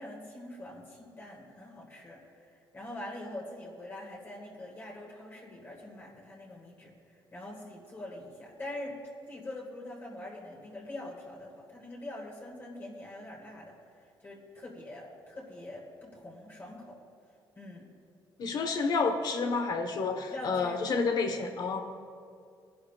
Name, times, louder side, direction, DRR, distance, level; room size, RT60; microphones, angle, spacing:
voice 1, 0.0-6.9 7.3-9.0 9.3-17.0 17.6-17.9 20.3-20.8, left 1 dB, 25° left, -2 dB, 1.8 m, -44 dB
voice 2, 18.4-21.8, left 4 dB, 55° left, 6 dB, 1.1 m, -29 dB
19.5 x 11.0 x 2.4 m, 2.3 s
cardioid pair, 125°, 8 cm